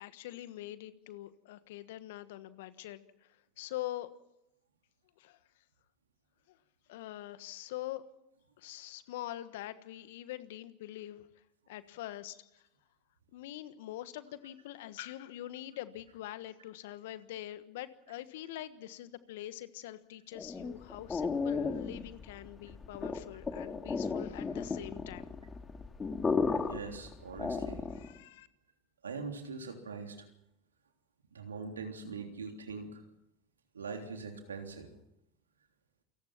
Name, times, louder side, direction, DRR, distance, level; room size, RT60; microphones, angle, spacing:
voice 1, 0.0-3.0 3.6-4.1 5.2-5.4 6.9-8.0 8.6-11.3 11.7-12.5 13.3-25.3 27.9-28.5, left 14 dB, 70° left, 13 dB, 1.3 m, -44 dB
sound 1, 20.3-28.2, left 4 dB, 25° left, 2.2 m, -35 dB
voice 2, 26.7-27.8 29.0-30.1 31.3-33.0 33.7-34.9, right 4 dB, 85° right, 4 dB, 3.4 m, -42 dB
28.5 x 18.5 x 5.9 m, 0.84 s
hypercardioid pair, 80°, 0 cm